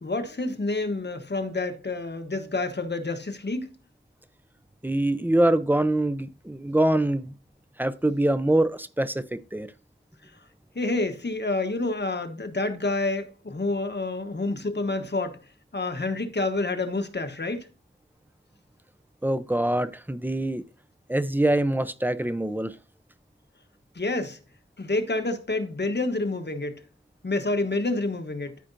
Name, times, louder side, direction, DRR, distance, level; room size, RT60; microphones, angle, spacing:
voice 1, 0.0-3.7 10.7-15.4 15.7-17.7 23.9-24.4 24.8-26.8 27.2-28.6, left 2 dB, 60° left, 1.1 m, -28 dB
voice 2, 4.8-7.3 7.8-9.7 19.2-20.6 21.1-22.7, right 1 dB, 10° right, 0.6 m, -24 dB
13.0 x 5.0 x 2.6 m
wide cardioid pair, 60°, 20 cm